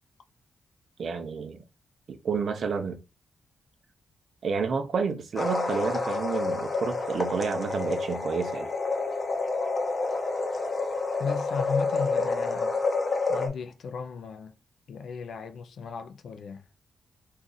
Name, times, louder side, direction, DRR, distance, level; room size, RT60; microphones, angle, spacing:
voice 1, 1.0-1.6 2.1-3.0 4.4-8.7, right 5 dB, 65° right, 0.6 m, -30 dB
sound 1, 5.4-13.5, left 3 dB, 35° left, 0.7 m, -29 dB
voice 2, 11.2-12.8 13.3-14.5 14.9-16.6, left 5 dB, 75° left, 0.4 m, -35 dB
2.6 x 2.4 x 3.8 m
cardioid pair, 95°, 0 cm